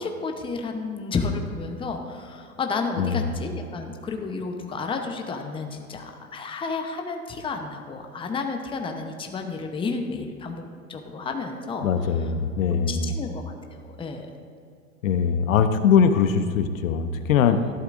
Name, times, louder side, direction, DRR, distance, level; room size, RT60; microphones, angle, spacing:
voice 1, 0.0-10.6 10.9-11.8 12.7-14.3 17.4-17.7, left 4 dB, 10° left, 4 dB, 0.9 m, -31 dB
voice 2, 3.0-3.3 11.8-13.1 15.0-17.6, left 7 dB, 65° left, 9 dB, 0.9 m, -21 dB
13.5 x 11.5 x 2.6 m, 2.3 s
hypercardioid pair, 105°, 43 cm